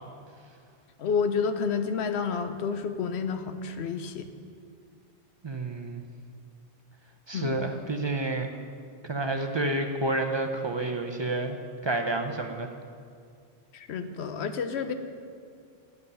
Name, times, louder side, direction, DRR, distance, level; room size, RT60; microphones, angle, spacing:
voice 1, 1.0-4.3 7.3-7.6 13.7-14.9, left 5 dB, 85° left, 9 dB, 1.0 m, -29 dB
voice 2, 5.4-6.0 7.3-8.5 9.0-12.7, right 2 dB, 35° right, 4 dB, 0.5 m, -29 dB
9.4 x 7.7 x 6.9 m, 2.3 s
omnidirectional pair, 1.1 m